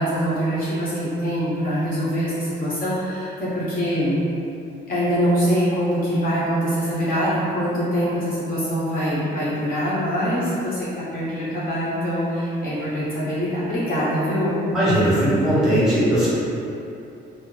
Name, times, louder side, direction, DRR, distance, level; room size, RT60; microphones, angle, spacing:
voice 1, 0.0-4.2 4.9-14.6, equal, 45° left, -10 dB, 1.0 m, -24 dB
voice 2, 14.7-16.3, right 1 dB, ahead, -11 dB, 1.4 m, -18 dB
3.1 x 2.0 x 4.0 m, 2.7 s
cardioid pair, 90°, 20 cm